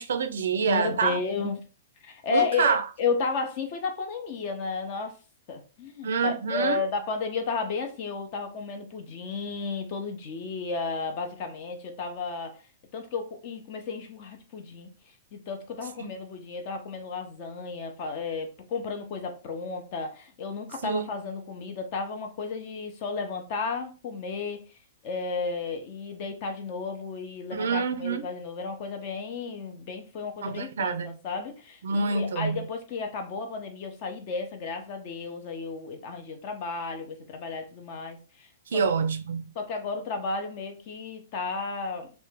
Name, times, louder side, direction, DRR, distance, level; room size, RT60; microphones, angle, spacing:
voice 1, 0.0-1.5 2.3-2.9 6.0-6.8 16.0-16.1 20.8-21.1 27.5-28.2 30.4-31.2 31.8-32.7 38.7-39.5, right 5 dB, 90° right, 0.4 m, -27 dB
voice 2, 0.7-1.6 2.0-5.2 5.5-12.6 12.9-14.9 15.3-24.6 25.0-38.8 39.6-42.1, left 4 dB, 30° left, 0.4 m, -33 dB
3.3 x 2.1 x 3.1 m
hypercardioid pair, 175°, 0 cm